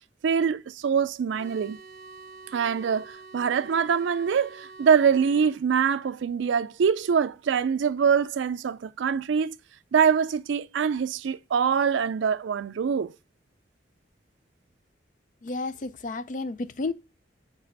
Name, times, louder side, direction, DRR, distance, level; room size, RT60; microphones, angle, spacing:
voice 1, 0.2-1.8 2.5-9.6 9.9-13.1, right 6 dB, 75° right, 0.4 m, -24 dB
sound 1, 1.4-5.6, right 3 dB, 45° right, 1.5 m, -46 dB
voice 2, 15.4-16.9, left 3 dB, 40° left, 0.4 m, -31 dB
7.2 x 3.3 x 5.3 m
head